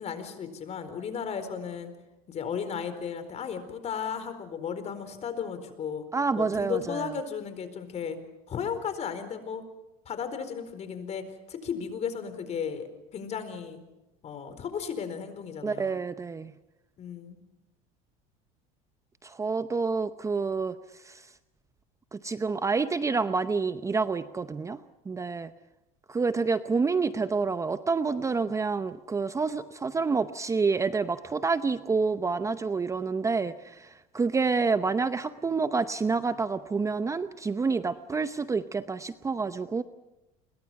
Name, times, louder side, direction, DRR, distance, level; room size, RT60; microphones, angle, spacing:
voice 1, 0.0-1.9 2.3-6.0 6.4-8.2 8.5-9.6 10.1-13.8 14.2-16.0 17.0-17.4, left 7 dB, 40° left, 10 dB, 4.3 m, -35 dB
voice 2, 6.1-7.1 15.6-16.5 19.2-20.8 21.0-21.3 22.1-24.8 25.1-25.5 26.1-39.8, right 4 dB, 15° right, 12 dB, 0.8 m, -28 dB
29.5 x 22.5 x 5.9 m, 1.0 s
supercardioid pair, 115°, 18 cm